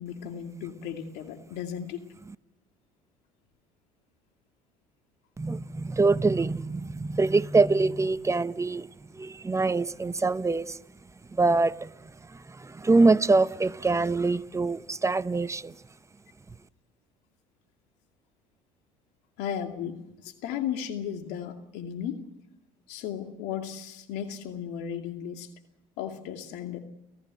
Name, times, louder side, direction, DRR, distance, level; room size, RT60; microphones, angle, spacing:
voice 1, 0.0-2.1 19.4-22.2 22.9-25.5 26.0-26.8, left 9 dB, 70° left, 2.5 m, -35 dB
voice 2, 5.4-8.9 9.1-10.8 11.3-11.9 12.3-15.7, right 3 dB, 15° right, 0.9 m, -24 dB
30.0 x 15.0 x 7.7 m
hypercardioid pair, 70°, 18 cm